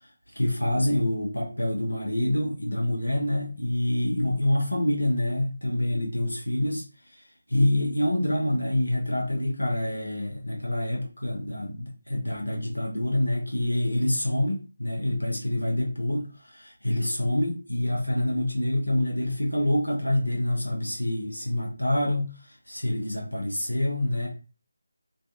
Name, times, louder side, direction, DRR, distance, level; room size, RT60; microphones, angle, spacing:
voice 1, 0.3-24.3, left 1 dB, 80° left, -1 dB, 0.7 m, -26 dB
2.5 x 2.4 x 2.4 m, 0.34 s
figure-of-eight pair, 160°, 0 cm